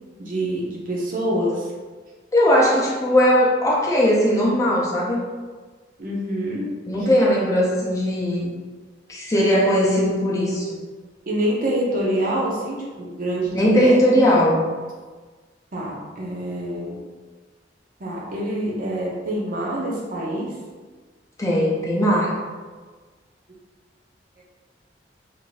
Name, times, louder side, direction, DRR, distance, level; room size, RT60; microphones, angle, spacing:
voice 1, 0.2-1.7 6.0-6.7 11.3-14.0 15.7-17.0 18.0-20.5 24.4-24.5, right 1 dB, 50° right, -4 dB, 0.6 m, -26 dB
voice 2, 2.3-5.2 6.9-8.5 9.1-10.8 13.5-14.7 21.4-22.4, equal, 15° left, -5 dB, 0.5 m, -19 dB
2.6 x 2.6 x 3.1 m, 1.4 s
head